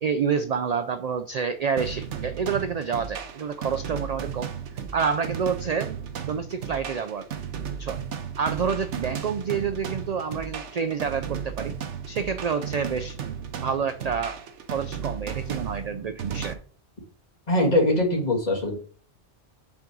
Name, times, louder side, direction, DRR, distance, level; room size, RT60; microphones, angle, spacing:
voice 1, 0.0-4.5 4.9-5.9 6.3-7.3 7.8-8.0 8.4-11.8 12.1-13.2 13.6-14.4 14.7-16.6, right 6 dB, 60° right, 9 dB, 0.4 m, -28 dB
sound 1, 1.8-16.5, right 7 dB, 85° right, 1.1 m, -35 dB
voice 2, 17.5-18.8, left 1 dB, 35° left, -1 dB, 2.0 m, -22 dB
5.9 x 3.9 x 6.0 m, 0.43 s
omnidirectional pair, 1.2 m